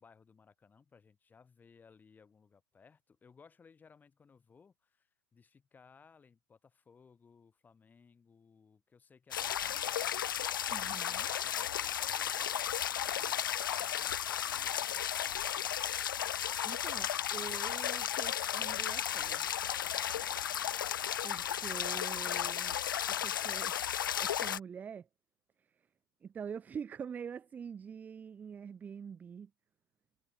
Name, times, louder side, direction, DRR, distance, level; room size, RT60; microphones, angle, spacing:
voice 1, 0.0-15.5, left 5 dB, 15° left, 5.8 m, -62 dB
sound 1, 9.3-24.6, left 10 dB, 65° left, 0.8 m, -34 dB
voice 2, 10.7-11.3 16.6-19.5 21.2-22.8 23.1-23.8 24.2-25.1 25.6-25.8 26.2-29.5, right 7 dB, 15° right, 0.5 m, -45 dB
figure-of-eight pair, 105°, 12 cm